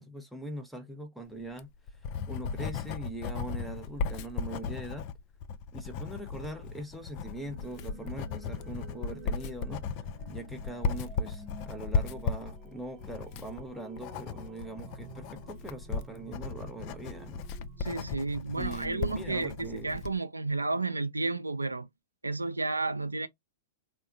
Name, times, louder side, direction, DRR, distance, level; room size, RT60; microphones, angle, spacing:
voice 1, 0.0-1.7 2.3-5.0 5.7-17.5 18.6-20.1, right 1 dB, ahead, 0.6 m, -42 dB
Writing, 1.4-20.2, left 5 dB, 40° left, 0.3 m, -36 dB
sound 1, 7.0-18.9, right 4 dB, 40° right, 0.7 m, -52 dB
voice 2, 17.8-21.9 22.2-23.3, right 3 dB, 85° right, 0.3 m, -32 dB
3.6 x 2.1 x 2.4 m
figure-of-eight pair, 105°, 0 cm